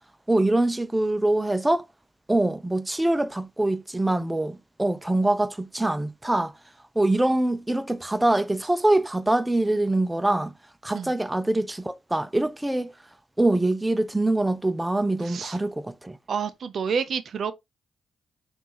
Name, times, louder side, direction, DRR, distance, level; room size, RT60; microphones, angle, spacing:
voice 1, 0.3-1.8 2.3-6.5 7.0-10.5 10.8-12.9 13.4-16.2, right 1 dB, 15° right, 0.5 m, -24 dB
voice 2, 15.2-15.6 16.3-17.5, right 6 dB, 65° right, 0.5 m, -29 dB
5.2 x 2.5 x 2.9 m
supercardioid pair, 50°, 0 cm